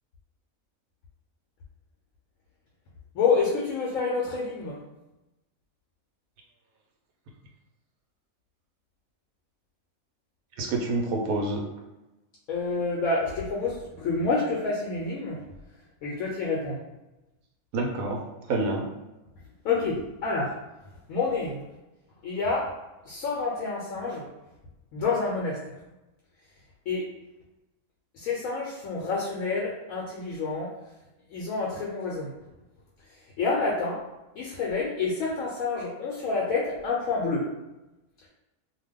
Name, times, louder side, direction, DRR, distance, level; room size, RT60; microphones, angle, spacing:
voice 1, 3.1-4.8 12.5-15.4 16.0-16.8 19.6-20.5 21.1-21.6 22.2-22.7 23.0-24.3 24.9-25.8 26.9-27.1 28.1-30.8 31.3-32.3 33.1-34.0 34.3-37.5, left 4 dB, 80° left, -4 dB, 1.0 m, -28 dB
voice 2, 10.6-11.6 17.7-18.9, right 2 dB, 80° right, 1 dB, 1.0 m, -28 dB
2.5 x 2.3 x 3.4 m, 0.99 s
omnidirectional pair, 1.4 m